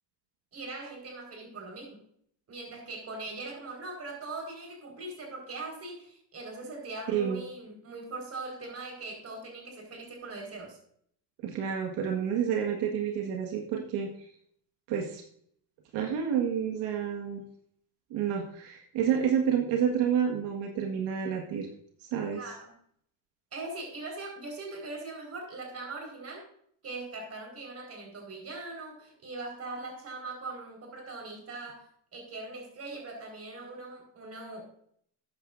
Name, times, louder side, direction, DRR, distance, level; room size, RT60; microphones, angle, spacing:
voice 1, 0.5-2.0 2.5-10.8 22.3-22.8 23.5-26.5 26.8-34.7, right 3 dB, 35° right, 2 dB, 4.8 m, -41 dB
voice 2, 7.1-7.4 11.4-14.1 14.9-15.2 15.9-17.4 18.1-21.7 22.1-22.4, right 8 dB, 90° right, 2 dB, 1.8 m, -29 dB
13.5 x 9.0 x 2.6 m, 0.64 s
cardioid pair, 125°, 41 cm